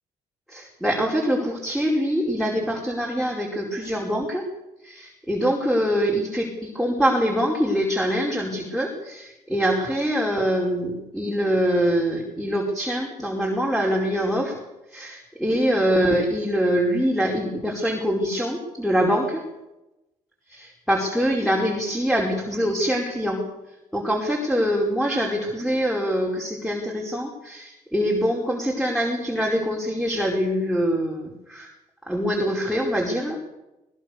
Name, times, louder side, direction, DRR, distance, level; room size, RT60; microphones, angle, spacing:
voice 1, 0.5-4.4 4.8-14.6 14.9-19.4 20.5-23.4 23.9-31.7 32.0-33.4, equal, ahead, -2 dB, 5.0 m, -24 dB
21.0 x 19.5 x 6.9 m, 0.95 s
cardioid pair, 110°, 13 cm